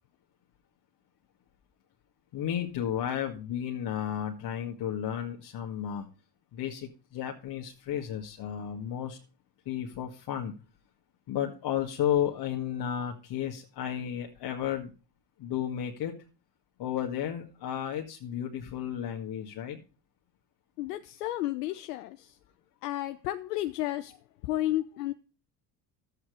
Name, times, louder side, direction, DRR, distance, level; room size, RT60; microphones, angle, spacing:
voice 1, 2.3-6.1 6.5-9.2 9.7-10.5 11.3-14.9 15.4-16.1 16.8-19.8, left 10 dB, 55° left, 1.8 m, -33 dB
voice 2, 20.8-22.3 22.8-24.2 24.4-25.1, left 15 dB, 90° left, 0.7 m, -32 dB
12.0 x 8.2 x 4.9 m
hypercardioid pair, 70°, 46 cm